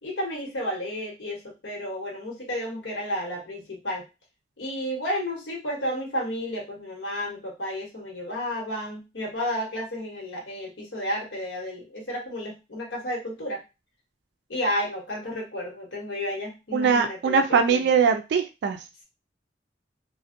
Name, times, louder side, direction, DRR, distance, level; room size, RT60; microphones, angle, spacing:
voice 1, 0.0-4.1 4.6-13.6 14.5-17.9, equal, 80° left, -1 dB, 1.0 m, -32 dB
voice 2, 16.7-19.0, right 6 dB, 65° right, 6 dB, 0.3 m, -22 dB
2.5 x 2.0 x 2.5 m, 0.27 s
head